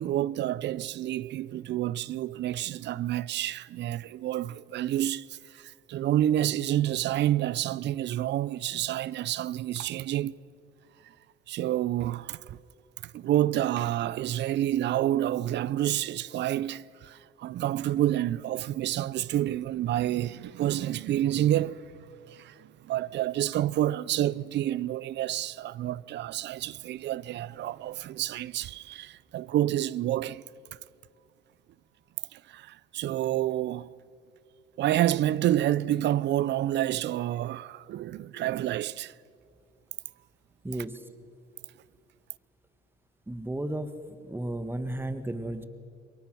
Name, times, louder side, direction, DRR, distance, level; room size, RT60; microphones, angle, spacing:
voice 1, 0.0-10.4 11.5-12.6 13.0-21.8 22.3-30.4 32.3-33.9 34.8-39.1, right 13 dB, 60° right, 0.6 m, -29 dB
voice 2, 40.6-41.0 43.3-43.9 44.2-45.6, right 1 dB, 10° right, 1.6 m, -33 dB
27.5 x 23.0 x 6.1 m
supercardioid pair, 70°, 20 cm